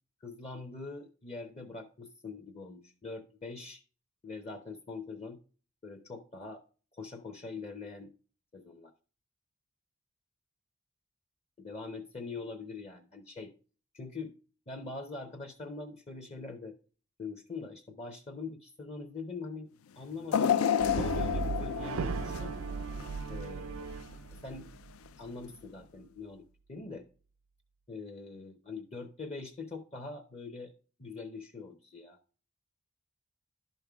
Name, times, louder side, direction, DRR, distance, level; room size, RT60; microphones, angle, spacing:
voice 1, 0.2-3.8 4.2-5.4 5.8-6.6 6.9-8.1 8.5-8.9 11.6-13.5 13.9-14.4 14.7-16.8 17.2-20.6 20.9-22.6 23.3-23.9 24.4-24.7 25.2-27.1 27.9-30.7 31.0-32.2, left 3 dB, 30° left, 5 dB, 0.7 m, -43 dB
sound 1, 20.3-23.5 23.9-24.0 25.1-25.2, left 8 dB, 70° left, 0.4 m, -30 dB
Brass instrument, 20.8-25.1, right 5 dB, 70° right, 0.4 m, -37 dB
11.5 x 5.3 x 3.5 m, 0.38 s
head